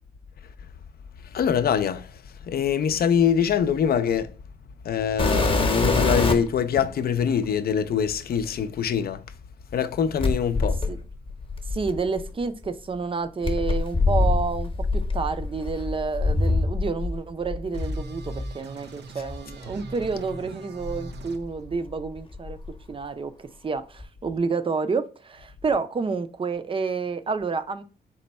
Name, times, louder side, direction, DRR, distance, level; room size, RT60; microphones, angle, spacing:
voice 1, 1.2-4.3 4.8-9.4 9.7-10.8 19.2-19.3, left 8 dB, 60° left, 0.4 m, -24 dB
sound 1, 5.2-6.6 7.4-7.5 10.2-12.3 13.4-17.2 17.5-18.5 19.3-19.4 20.0-20.1 20.8-21.9 22.2-22.7 24.0-24.1, left 3 dB, 30° left, 0.9 m, -25 dB
voice 2, 11.7-22.6 22.9-27.8, right 4 dB, 30° right, 0.5 m, -29 dB
sound 2, 17.7-21.4, right 3 dB, 75° right, 0.6 m, -42 dB
4.2 x 2.2 x 4.1 m
cardioid pair, 70°, 18 cm